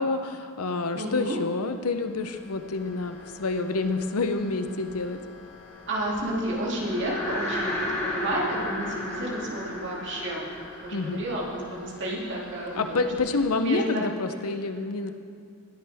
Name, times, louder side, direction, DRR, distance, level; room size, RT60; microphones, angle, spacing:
voice 1, 0.0-5.2 10.9-11.2 12.7-15.1, left 3 dB, 80° left, 8 dB, 0.8 m, -28 dB
voice 2, 0.9-1.4 5.9-10.5 10.8-13.1 13.6-14.0, right 1 dB, 55° right, -4 dB, 2.7 m, -31 dB
sound 1, 1.4-13.6, left 4 dB, 55° left, 3.3 m, -49 dB
sound 2, 6.6-12.1, left 1 dB, 30° left, 2.3 m, -33 dB
19.5 x 8.7 x 3.5 m, 2.3 s
head